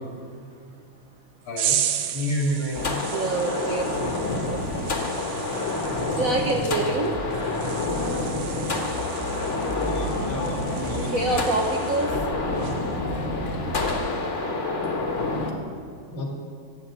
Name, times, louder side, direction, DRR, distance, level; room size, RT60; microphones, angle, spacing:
voice 1, 1.4-1.8 2.1-3.0 7.6-7.7 9.6-11.4 12.1-12.6 16.1-16.3, equal, 75° left, 0 dB, 3.2 m, -31 dB
sound 1, 1.6-12.3 12.6-12.9, right 10 dB, 70° right, 1.4 m, -34 dB
sound 2, 2.7-15.5, left 2 dB, 40° left, 1.5 m, -28 dB
voice 2, 3.1-3.8 6.2-7.2 11.1-12.1 13.0-13.1, right 2 dB, 55° right, 2 dB, 1.1 m, -25 dB
sound 3, 4.5-14.0, equal, 25° left, 1.0 m, -36 dB
12.0 x 8.2 x 8.5 m, 2.2 s
omnidirectional pair, 2.3 m